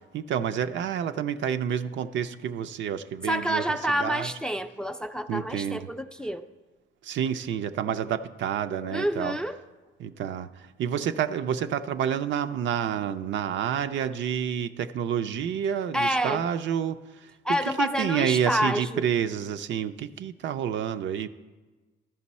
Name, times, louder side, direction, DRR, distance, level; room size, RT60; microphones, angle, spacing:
voice 1, 0.1-4.3 5.3-5.9 7.0-9.4 10.0-17.3 17.7-21.3, right 8 dB, 70° right, 10 dB, 0.5 m, -29 dB
voice 2, 3.2-6.5 8.9-9.6 15.9-16.4 17.4-19.0, equal, 5° left, 9 dB, 0.4 m, -28 dB
13.0 x 5.3 x 4.2 m, 1.3 s
cardioid pair, 90°, 20 cm